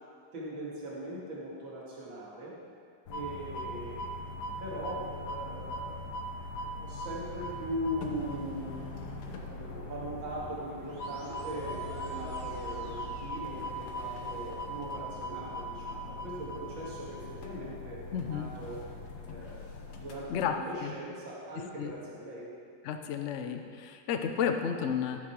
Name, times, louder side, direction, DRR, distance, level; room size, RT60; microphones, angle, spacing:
voice 1, 0.3-2.5 3.1-4.2 4.6-6.0 6.8-8.7 9.4-18.8 19.3-19.7 20.0-22.5, equal, 75° right, -6 dB, 2.8 m, -40 dB
sound 1, 3.1-20.5, equal, 60° left, 1.4 m, -40 dB
sound 2, 10.8-14.3, right 2 dB, 55° right, 0.4 m, -50 dB
voice 2, 18.1-18.5 20.3-20.5 20.8-20.9 21.8-21.9 22.8-25.2, left 7 dB, 85° left, 6 dB, 0.6 m, -32 dB
13.5 x 6.5 x 4.7 m, 2.3 s
omnidirectional pair, 2.1 m